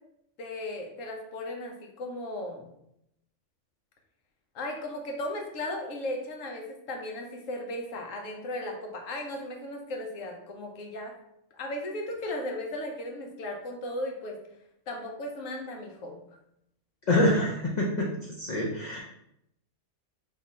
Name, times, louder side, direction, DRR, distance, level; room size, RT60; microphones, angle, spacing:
voice 1, 0.4-2.7 4.5-11.1 11.5-14.4 14.9-16.2, left 1 dB, 85° left, 2 dB, 1.1 m, -36 dB
voice 2, 17.1-18.1 18.4-19.0, left 1 dB, 55° left, -2 dB, 0.5 m, -25 dB
3.6 x 2.4 x 4.1 m, 0.79 s
omnidirectional pair, 1.3 m